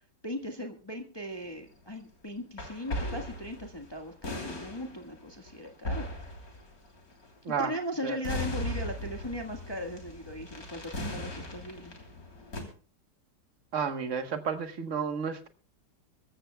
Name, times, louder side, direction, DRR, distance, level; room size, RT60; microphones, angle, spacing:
voice 1, 0.2-6.1 7.6-11.9, left 1 dB, 15° left, 4 dB, 1.5 m, -38 dB
sound 1, 1.4-1.7 2.6-7.4 8.0-12.6, left 1 dB, 55° left, 3.6 m, -38 dB
voice 2, 13.7-15.5, right 6 dB, 50° right, 9 dB, 1.5 m, -31 dB
24.0 x 14.0 x 2.3 m, 0.39 s
omnidirectional pair, 1.8 m